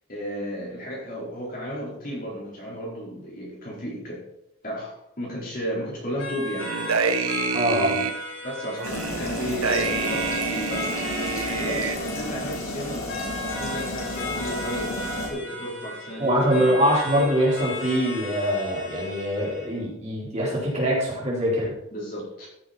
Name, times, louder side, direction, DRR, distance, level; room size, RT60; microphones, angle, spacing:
voice 1, 0.1-4.2 4.6-7.1 8.4-16.7 21.9-22.5, equal, 40° left, -4 dB, 4.5 m, -33 dB
sound 1, 6.2-19.8, left 1 dB, 55° left, 3.7 m, -36 dB
sound 2, 6.6-8.1 8.8-12.0, right 5 dB, 80° right, 0.9 m, -27 dB
voice 2, 7.5-8.0 16.2-21.7, equal, 30° right, -6 dB, 4.4 m, -23 dB
sound 3, 8.8-15.3, left 2 dB, 70° left, 3.3 m, -32 dB
15.0 x 7.6 x 4.4 m, 0.80 s
head